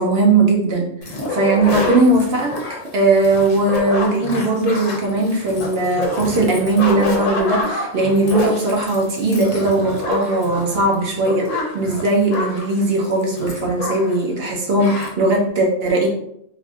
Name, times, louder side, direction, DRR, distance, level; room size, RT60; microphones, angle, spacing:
voice 1, 0.0-16.1, right 2 dB, 65° right, 0 dB, 0.7 m, -19 dB
sound 1, 1.0-14.2 14.5-14.6 14.8-15.1, left 2 dB, 85° left, 1.1 m, -27 dB
3.4 x 2.5 x 2.3 m, 0.75 s
omnidirectional pair, 1.3 m